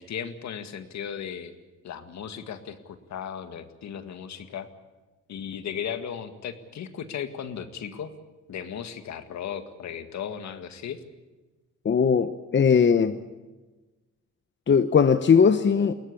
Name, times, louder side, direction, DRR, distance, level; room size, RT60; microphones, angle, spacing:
voice 1, 0.0-1.5 1.8-4.7 5.3-8.1 8.5-11.0, left 8 dB, 65° left, 9 dB, 1.9 m, -36 dB
voice 2, 11.8-13.2 14.7-15.9, left 6 dB, 40° left, 10 dB, 0.9 m, -19 dB
21.5 x 17.5 x 8.6 m, 1.2 s
cardioid pair, 90°, 30 cm